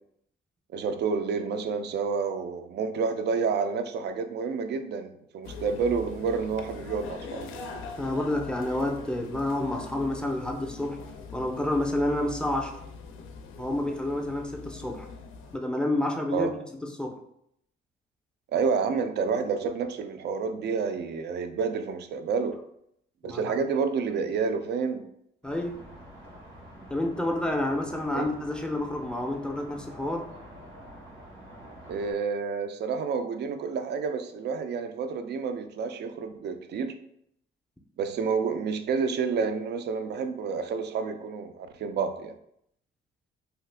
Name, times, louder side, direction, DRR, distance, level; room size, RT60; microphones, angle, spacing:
voice 1, 0.7-7.6 16.3-16.5 18.5-22.6 23.2-25.0 28.1-28.3 31.9-37.0 38.0-42.4, right 5 dB, 60° right, 9 dB, 0.4 m, -29 dB
sound 1, 5.4-15.6, left 4 dB, 85° left, 0.4 m, -42 dB
voice 2, 8.0-11.0 11.3-12.8 13.6-15.1 15.5-17.2 23.2-23.4 25.4-25.8 26.9-30.3, left 1 dB, 5° left, 3 dB, 0.4 m, -29 dB
sound 2, 25.4-32.1, right 1 dB, 80° right, 1.4 m, -47 dB
2.8 x 2.3 x 3.3 m, 0.74 s
cardioid pair, 90°, 20 cm